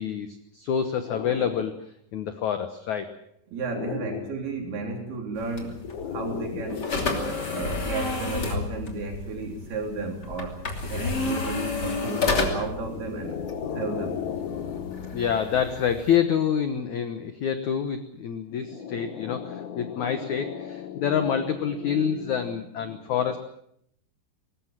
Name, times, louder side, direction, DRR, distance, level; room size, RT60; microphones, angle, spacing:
voice 1, 0.0-3.1 3.7-4.3 5.9-7.7 12.1-23.4, left 8 dB, 75° left, 9 dB, 1.7 m, -28 dB
voice 2, 3.5-6.9 7.5-10.6 10.9-13.4 13.8-14.2, right 3 dB, 60° right, 3 dB, 5.4 m, -33 dB
sound 1, 5.3-16.2, left 3 dB, 25° left, 2.8 m, -31 dB
22.5 x 19.5 x 7.5 m, 0.71 s
omnidirectional pair, 5.2 m